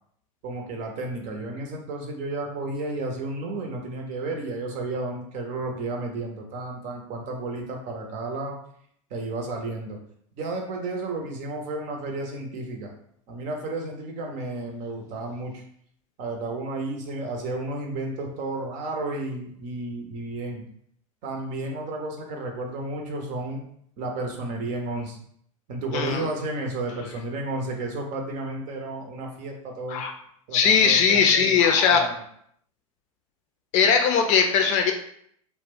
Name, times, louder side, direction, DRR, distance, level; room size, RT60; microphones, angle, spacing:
voice 1, 0.4-8.6 9.1-10.0 10.3-12.9 13.3-15.6 16.2-20.6 21.2-23.6 24.0-25.2 25.7-30.0 30.5-31.6 31.9-32.2, right 2 dB, 45° right, 2 dB, 0.7 m, -32 dB
voice 2, 25.9-26.2 29.9-30.1 30.5-32.0 33.7-34.9, left 6 dB, 45° left, 4 dB, 0.5 m, -19 dB
2.4 x 2.1 x 3.6 m, 0.67 s
figure-of-eight pair, 85°, 18 cm